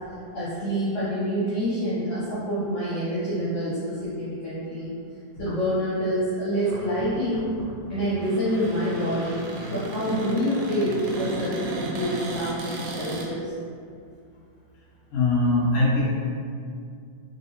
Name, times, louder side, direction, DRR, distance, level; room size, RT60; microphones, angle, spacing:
voice 1, 0.3-4.9 5.4-7.5 7.9-13.5, equal, 70° left, -12 dB, 2.3 m, -27 dB
Cupboard open or close, 6.6-13.3, right 2 dB, 85° right, 2.3 m, -35 dB
voice 2, 15.1-16.0, left 2 dB, 55° left, -10 dB, 2.4 m, -21 dB
5.2 x 2.7 x 2.8 m, 2.2 s
omnidirectional pair, 3.9 m